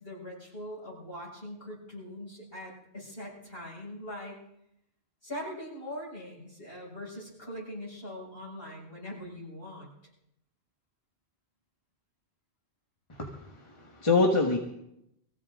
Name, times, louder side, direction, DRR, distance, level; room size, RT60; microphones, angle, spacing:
voice 1, 0.0-4.4 5.2-9.9, left 1 dB, 60° left, -5 dB, 6.9 m, -42 dB
voice 2, 13.1-14.6, left 3 dB, 30° left, 0 dB, 1.6 m, -26 dB
23.5 x 15.5 x 3.8 m, 0.80 s
omnidirectional pair, 1.1 m